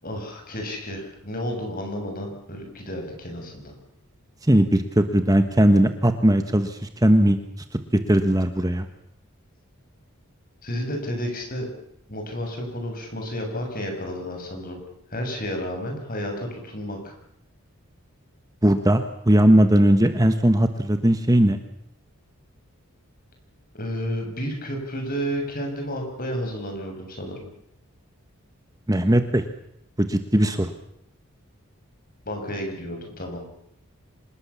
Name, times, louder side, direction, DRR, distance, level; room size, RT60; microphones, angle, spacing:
voice 1, 0.0-3.7 10.6-11.7 12.1-14.8 15.1-17.1 23.7-27.5 32.2-33.4, equal, 40° left, 3 dB, 7.4 m, -31 dB
voice 2, 4.5-7.4 8.1-8.9 18.6-21.6 28.9-29.4 30.0-30.7, right 1 dB, 15° right, 8 dB, 1.2 m, -19 dB
26.0 x 20.5 x 7.2 m, 0.75 s
head